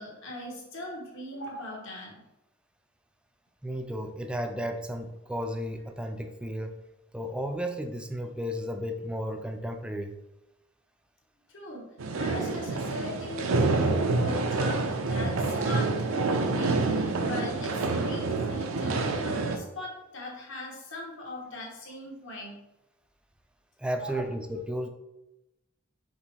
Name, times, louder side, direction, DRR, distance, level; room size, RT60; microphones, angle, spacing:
voice 1, 0.0-2.2 11.5-11.9 12.1-22.6 23.9-24.3, left 1 dB, 65° left, -2 dB, 1.3 m, -40 dB
voice 2, 3.6-6.7 7.1-10.1 23.8-24.9, equal, 5° right, 5 dB, 0.4 m, -33 dB
sound 1, 12.0-19.6, right 3 dB, 80° right, 0.5 m, -27 dB
5.1 x 3.0 x 3.3 m, 0.93 s
head